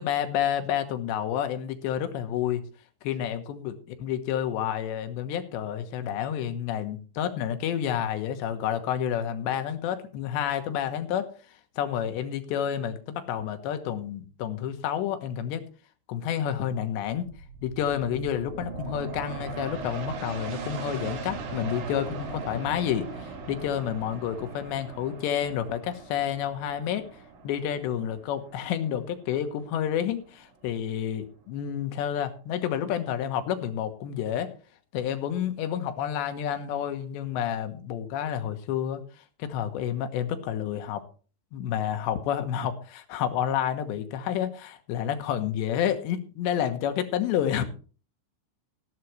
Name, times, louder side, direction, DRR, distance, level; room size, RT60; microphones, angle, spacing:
voice 1, 0.0-2.6 3.0-11.3 11.8-15.7 16.1-17.3 17.6-27.1 27.4-34.5 34.9-39.0 39.4-41.0 41.5-47.6, left 9 dB, 75° left, 8 dB, 3.2 m, -29 dB
sound 1, 17.1-30.3 30.8-30.9, right 4 dB, 65° right, 3.9 m, -39 dB
15.5 x 11.0 x 3.2 m, 0.38 s
omnidirectional pair, 5.5 m